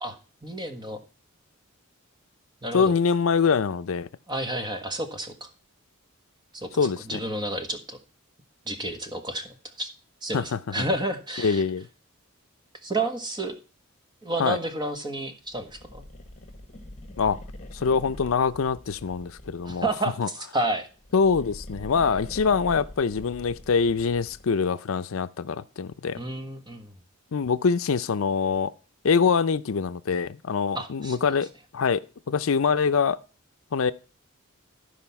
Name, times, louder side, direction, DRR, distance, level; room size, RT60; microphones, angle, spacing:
voice 1, 0.0-1.0 2.6-2.9 4.3-5.5 6.5-8.0 8.6-9.9 10.2-11.6 12.8-13.5 14.2-16.0 19.6-20.9 26.1-26.9 30.7-31.2, right 2 dB, 20° right, 1.3 m, -31 dB
voice 2, 2.7-4.1 6.8-7.2 10.3-10.8 11.4-11.9 14.4-14.6 17.2-17.4 17.7-19.9 20.2-20.3 21.1-26.2 27.3-28.7 29.0-31.5 31.7-32.0 32.3-33.2 33.7-33.9, left 5 dB, 70° left, 0.5 m, -24 dB
sound 1, 15.5-20.0 20.9-24.6, left 1 dB, 35° left, 1.6 m, -43 dB
13.0 x 4.9 x 5.7 m
head